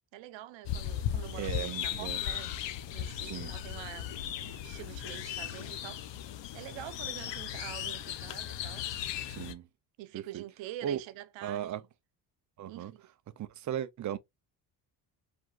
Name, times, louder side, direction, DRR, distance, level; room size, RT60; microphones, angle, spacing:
voice 1, 0.1-6.0 6.5-8.9 10.0-11.8 12.7-13.0, right 14 dB, 75° right, 0.8 m, -46 dB
sound 1, 0.6-9.5, left 10 dB, 70° left, 0.8 m, -37 dB
voice 2, 1.3-2.2 3.2-3.5 9.2-9.7 10.1-10.4 10.8-11.0 11.4-11.8 12.6-12.9 13.4-14.2, right 10 dB, 40° right, 0.6 m, -36 dB
4.8 x 3.7 x 2.4 m
cardioid pair, 130°, 45 cm